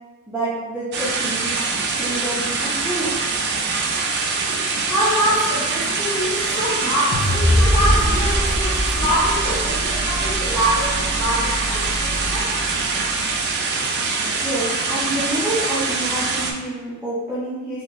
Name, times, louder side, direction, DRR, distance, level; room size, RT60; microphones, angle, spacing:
voice 1, 0.3-1.6 2.0-3.3 14.4-17.8, right 1 dB, 5° right, -11 dB, 0.6 m, -28 dB
sound 1, 0.9-16.5, right 4 dB, 50° right, 0.4 m, -24 dB
voice 2, 4.9-12.5, equal, 25° left, -9 dB, 1.3 m, -24 dB
sound 2, 7.1-13.3, equal, 65° left, 0.5 m, -23 dB
2.9 x 2.2 x 4.0 m, 1.2 s
head